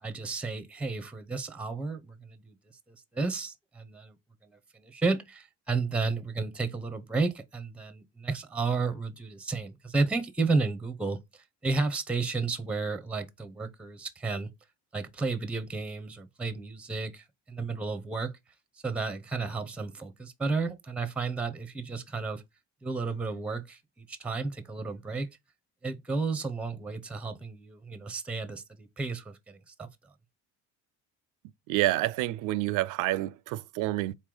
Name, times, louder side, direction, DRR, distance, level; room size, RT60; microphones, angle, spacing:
voice 1, 0.0-2.5 3.1-4.1 4.4-14.5 14.9-18.3 18.8-22.4 22.8-25.3 25.8-29.9, right 3 dB, 5° right, 0.6 m, -32 dB
voice 2, 31.7-34.1, right 17 dB, 70° right, 0.5 m, -28 dB
4.2 x 3.1 x 3.7 m
supercardioid pair, 100°, 33 cm